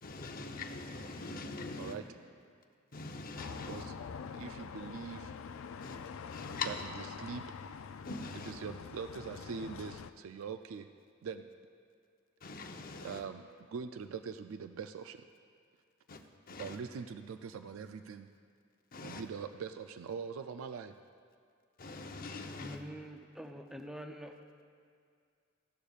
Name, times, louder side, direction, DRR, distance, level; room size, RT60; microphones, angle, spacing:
voice 1, 0.0-2.0 2.9-3.9 5.8-6.0 6.3-6.8 8.0-8.5 12.4-13.2 16.1-16.8 18.9-19.2 21.8-22.8, left 3 dB, 45° left, 0.8 m, -42 dB
sound 1, 3.4-10.1, left 6 dB, 70° left, 0.4 m, -45 dB
voice 2, 3.6-3.9 4.3-5.3 6.6-6.7 7.2-7.5 8.5-10.9 11.2-11.5 13.0-15.2 16.6-18.3 19.0-20.9, right 6 dB, 75° right, 0.4 m, -42 dB
voice 3, 22.6-24.3, equal, ahead, 0.5 m, -45 dB
15.5 x 11.5 x 2.4 m
head